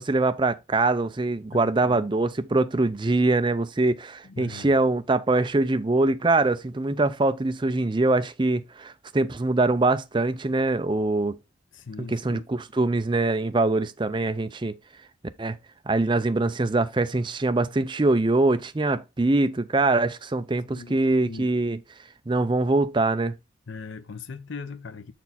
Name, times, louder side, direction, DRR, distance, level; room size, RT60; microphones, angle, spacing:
voice 1, 0.0-11.4 12.1-14.8 15.4-15.6 15.9-21.8 22.3-23.3, right 2 dB, 25° right, 0.5 m, -23 dB
voice 2, 1.5-2.1 4.2-4.7 11.7-12.4 20.7-21.5 23.7-25.1, left 4 dB, 65° left, 0.6 m, -40 dB
7.0 x 4.4 x 4.1 m
head